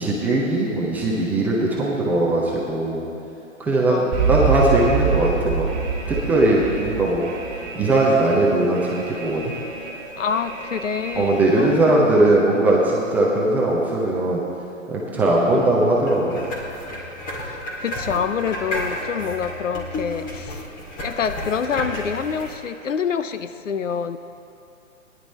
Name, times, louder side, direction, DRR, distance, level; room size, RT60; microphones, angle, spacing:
voice 1, 0.0-3.1 3.6-5.7 6.1-7.3 7.7-9.5 11.2-14.4 14.9-16.4, right 2 dB, 5° right, -4 dB, 0.5 m, -19 dB
voice 2, 3.9-4.4 10.2-12.1 15.5-15.8 17.5-20.6 21.0-24.2, left 7 dB, 65° left, 11 dB, 0.7 m, -27 dB
Alarm, 4.1-11.8, right 5 dB, 20° right, 3.0 m, -27 dB
sound 1, 16.1-22.6, left 1 dB, 20° left, 2.2 m, -32 dB
18.0 x 10.5 x 4.2 m, 2.8 s
figure-of-eight pair, 130°, 40 cm